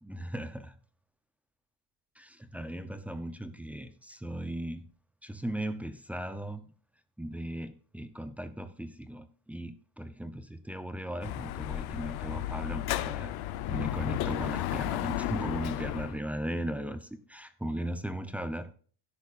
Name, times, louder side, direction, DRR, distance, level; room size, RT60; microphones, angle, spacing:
voice 1, 0.0-0.8 2.2-4.9 5.2-6.7 7.2-13.3 13.7-17.0 17.3-18.7, right 1 dB, 5° right, 9 dB, 0.7 m, -37 dB
Dog / Motorcycle, 11.2-16.2, left 13 dB, 55° left, 0.9 m, -33 dB
12.5 x 10.5 x 2.6 m, 0.42 s
cardioid pair, 135°, 47 cm